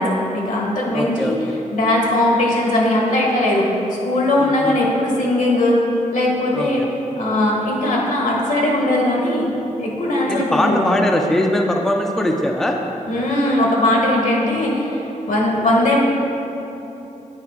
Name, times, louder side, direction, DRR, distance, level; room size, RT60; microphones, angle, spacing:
voice 1, 0.0-1.4 1.7-3.8 4.0-5.8 6.1-6.8 7.2-9.5 9.8-11.0 13.1-16.0, left 1 dB, 75° left, -2 dB, 1.3 m, -19 dB
voice 2, 0.9-1.5 4.4-4.8 6.5-6.9 10.3-12.8, left 1 dB, 5° left, 2 dB, 0.3 m, -21 dB
9.4 x 4.6 x 3.5 m, 3.0 s
wide cardioid pair, 170°, 13 cm